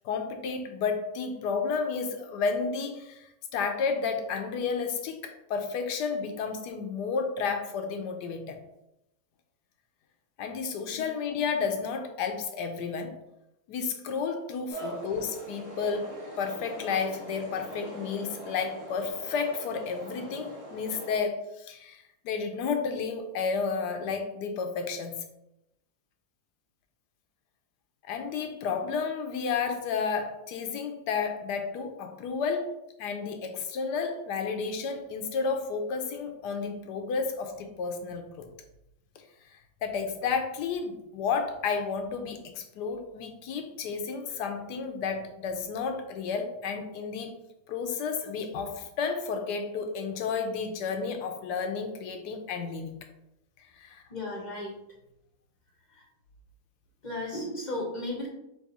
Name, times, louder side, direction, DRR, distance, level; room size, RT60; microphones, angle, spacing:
voice 1, 0.0-8.6 10.4-13.2 13.7-25.2 28.1-38.5 39.5-47.3 47.7-53.0 53.8-54.0, left 5 dB, 80° left, 5 dB, 1.2 m, -32 dB
sound 1, 14.7-21.2, equal, 30° right, 0.8 m, -42 dB
voice 2, 54.1-54.7 55.9-56.0 57.0-58.3, left 1 dB, 40° left, -2 dB, 0.7 m, -35 dB
3.6 x 3.2 x 4.1 m, 0.86 s
omnidirectional pair, 1.8 m